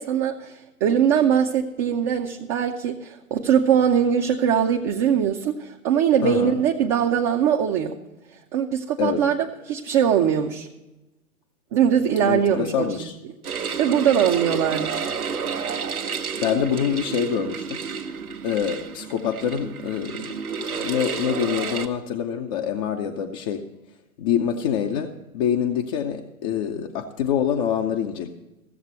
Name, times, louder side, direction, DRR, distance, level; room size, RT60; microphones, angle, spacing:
voice 1, 0.0-8.0 8.5-10.7 11.7-13.1 13.8-15.1, right 8 dB, 25° right, 1 dB, 0.6 m, -21 dB
voice 2, 6.2-6.5 9.0-9.2 12.1-13.1 16.4-17.8 18.4-20.3 20.7-23.6 24.2-28.3, left 8 dB, 25° left, 3 dB, 0.6 m, -25 dB
sound 1, 13.4-21.9, right 6 dB, 80° right, 1.3 m, -30 dB
15.5 x 7.3 x 5.7 m, 0.99 s
figure-of-eight pair, 120°, 43 cm